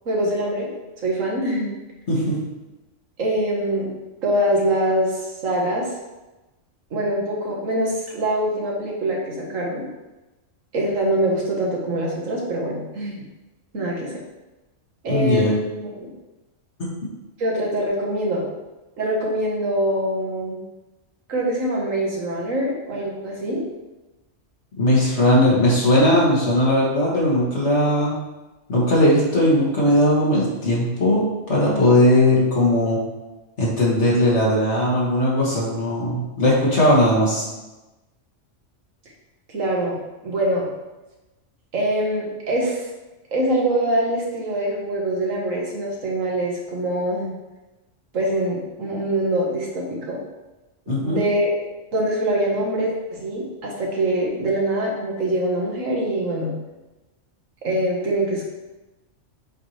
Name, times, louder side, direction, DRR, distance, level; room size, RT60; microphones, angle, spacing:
voice 1, 0.1-0.7 1.0-1.7 3.2-3.9 4.2-5.9 6.9-9.9 10.7-13.2 13.7-14.1 15.0-15.6 16.0-16.1 17.4-18.4 19.0-20.6 21.3-23.6 39.5-40.0 40.2-40.7 41.7-42.9 43.3-47.4 48.1-50.2 50.9-51.6 51.9-56.6 57.6-58.4, right 1 dB, 80° right, -2 dB, 1.8 m, -24 dB
voice 2, 15.1-15.5 24.8-28.1 28.7-33.0 33.6-37.5 50.9-51.2, left 1 dB, 60° left, -6 dB, 2.3 m, -18 dB
7.8 x 4.7 x 3.3 m, 1.1 s
omnidirectional pair, 1.3 m